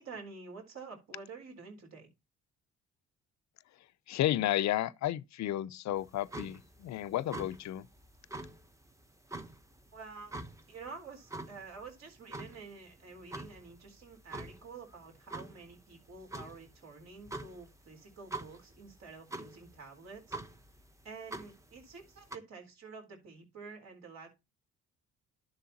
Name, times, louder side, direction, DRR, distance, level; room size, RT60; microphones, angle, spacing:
voice 1, 0.0-2.1 9.9-10.4 10.7-20.4 21.0-24.3, right 4 dB, 60° right, 3.9 m, -49 dB
voice 2, 4.1-7.9, left 13 dB, 65° left, 0.6 m, -32 dB
sound 1, 6.0-22.4, right 2 dB, 10° right, 0.9 m, -46 dB
11.5 x 6.8 x 2.8 m
cardioid pair, 90°, 30 cm